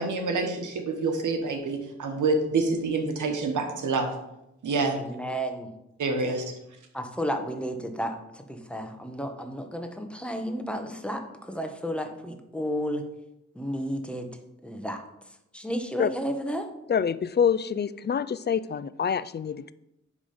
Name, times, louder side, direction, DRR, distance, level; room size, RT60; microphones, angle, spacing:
voice 1, 0.0-4.1 4.6-5.0 6.0-6.4, right 3 dB, 85° right, 5 dB, 1.3 m, -27 dB
voice 2, 4.9-5.7 6.9-13.0 13.5-14.3 14.6-15.0 15.5-16.7, equal, 5° left, 5 dB, 1.3 m, -32 dB
voice 3, 16.9-19.7, left 7 dB, 35° left, 16 dB, 0.4 m, -26 dB
9.9 x 3.7 x 5.1 m, 0.86 s
cardioid pair, 55°, 30 cm